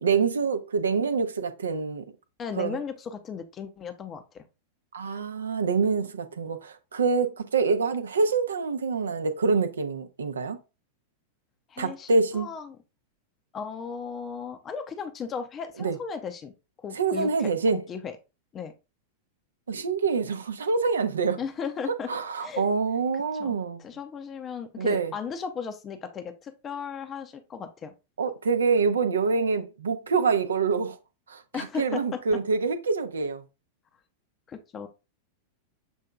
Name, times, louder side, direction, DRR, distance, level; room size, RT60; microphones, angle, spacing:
voice 1, 0.0-2.0 2.6-2.8 4.9-10.6 11.8-12.5 15.8-16.0 16.9-17.8 19.7-21.4 22.1-23.8 24.8-25.1 28.2-31.0 31.3-33.4, right 4 dB, 70° right, 0.6 m, -26 dB
voice 2, 2.4-4.4 11.7-12.8 13.5-16.5 16.8-18.1 18.5-18.7 21.4-22.1 22.4-22.6 23.4-27.9 31.5-32.2 34.5-34.9, left 6 dB, 25° left, 0.6 m, -36 dB
7.0 x 2.7 x 2.3 m
figure-of-eight pair, 90°, 0 cm